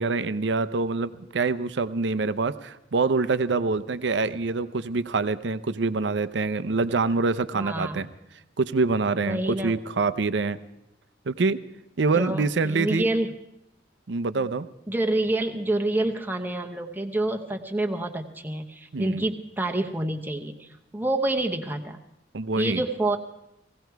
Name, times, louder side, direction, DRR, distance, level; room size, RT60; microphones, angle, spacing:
voice 1, 0.0-8.1 8.6-10.6 11.3-11.6 12.0-13.1 14.1-14.7 18.9-19.2 22.3-22.8, right 3 dB, 65° right, 13 dB, 0.6 m, -25 dB
voice 2, 7.5-8.0 9.2-9.7 12.1-13.3 14.9-22.0 22.6-23.2, right 1 dB, 10° right, 3 dB, 0.8 m, -27 dB
18.0 x 16.0 x 4.7 m, 0.85 s
head